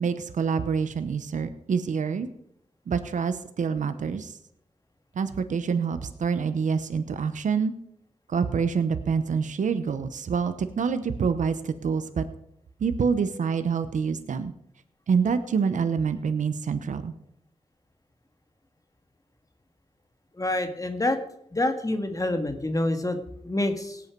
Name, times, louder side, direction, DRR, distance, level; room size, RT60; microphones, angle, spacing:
voice 1, 0.0-2.3 2.9-4.3 5.2-7.7 8.3-12.2 12.8-14.5 15.1-17.1, right 6 dB, 85° right, 11 dB, 0.9 m, -26 dB
voice 2, 20.4-21.2 21.5-23.2 23.4-24.0, left 1 dB, 25° left, 7 dB, 1.8 m, -27 dB
17.5 x 8.5 x 4.7 m, 0.74 s
cardioid pair, 55°, 13 cm